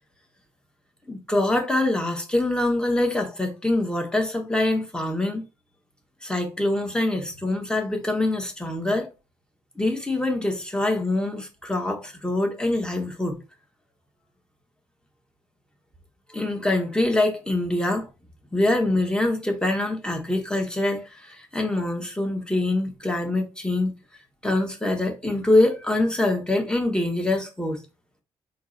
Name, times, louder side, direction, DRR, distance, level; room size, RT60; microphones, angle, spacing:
voice 1, 1.1-5.4 6.2-9.1 9.8-13.4 16.3-18.1 18.5-23.9 24.4-27.8, left 2 dB, 5° left, 1.3 m, -24 dB
3.7 x 3.0 x 2.5 m
hypercardioid pair, 45°, 12 cm